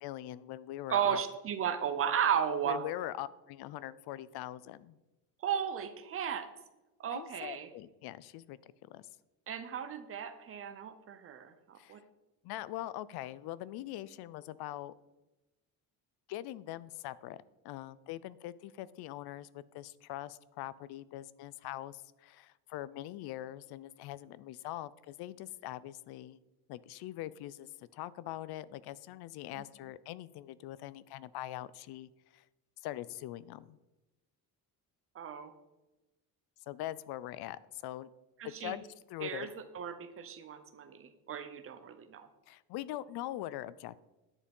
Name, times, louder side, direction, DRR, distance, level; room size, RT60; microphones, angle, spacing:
voice 1, 0.0-1.2 2.6-5.0 7.1-9.1 11.8-12.0 12.4-14.9 16.3-26.4 26.7-32.4 32.8-33.8 36.7-38.1 38.4-39.5 42.5-44.0, left 14 dB, 80° left, 19 dB, 0.6 m, -42 dB
voice 2, 0.9-2.8 5.4-6.5 7.0-7.7 9.5-12.0 35.1-35.5 38.4-38.7 39.2-39.5 39.7-42.3, right 8 dB, 35° right, 10 dB, 0.7 m, -34 dB
10.0 x 6.7 x 5.4 m, 1.0 s
cardioid pair, 180°, 38 cm